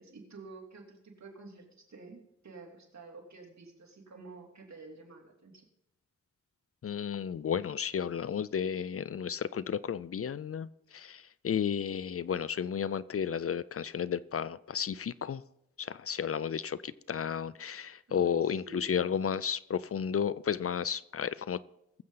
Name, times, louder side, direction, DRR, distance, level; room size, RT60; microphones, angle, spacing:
voice 1, 0.0-5.7 18.1-18.9, right 3 dB, 65° right, 1 dB, 2.8 m, -50 dB
voice 2, 6.8-10.7 10.9-15.4 15.8-21.6, left 8 dB, 50° left, 18 dB, 0.4 m, -33 dB
20.5 x 7.7 x 3.9 m, 0.82 s
wide cardioid pair, 70°, 29 cm